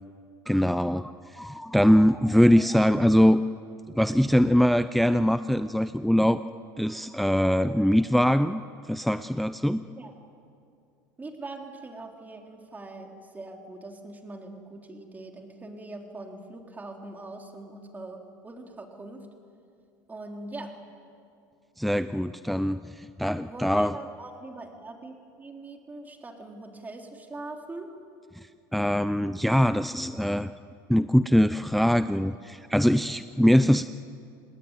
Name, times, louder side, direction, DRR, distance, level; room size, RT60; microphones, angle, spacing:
voice 1, 0.5-3.4 3.9-6.4 6.8-8.6 8.9-9.8 21.8-24.0 28.7-30.5 30.9-33.9, equal, ahead, 12 dB, 0.5 m, -22 dB
voice 2, 11.2-19.3 20.1-20.8 23.5-27.9, right 2 dB, 20° right, 2 dB, 3.7 m, -42 dB
28.5 x 19.5 x 9.2 m, 2.5 s
supercardioid pair, 110°, 9 cm